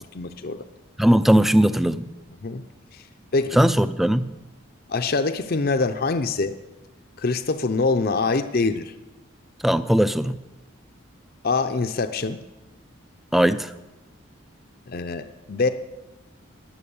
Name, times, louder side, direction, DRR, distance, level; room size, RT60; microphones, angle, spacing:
voice 1, 0.1-0.7 2.4-2.6 2.9-3.0 3.3-3.6 4.9-6.5 7.2-8.9 11.4-12.4 14.9-15.7, left 3 dB, 45° left, 8 dB, 0.6 m, -24 dB
voice 2, 1.0-2.1 3.5-4.3 9.6-10.4 13.3-13.7, equal, ahead, 13 dB, 0.4 m, -19 dB
19.0 x 7.5 x 7.0 m, 1.1 s
head